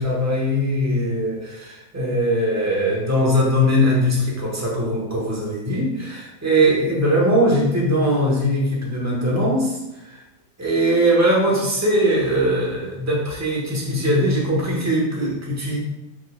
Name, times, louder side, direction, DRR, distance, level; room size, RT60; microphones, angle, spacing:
voice 1, 0.0-10.2 10.6-15.8, equal, 15° right, -4 dB, 0.7 m, -20 dB
4.6 x 4.3 x 2.2 m, 0.98 s
omnidirectional pair, 1.8 m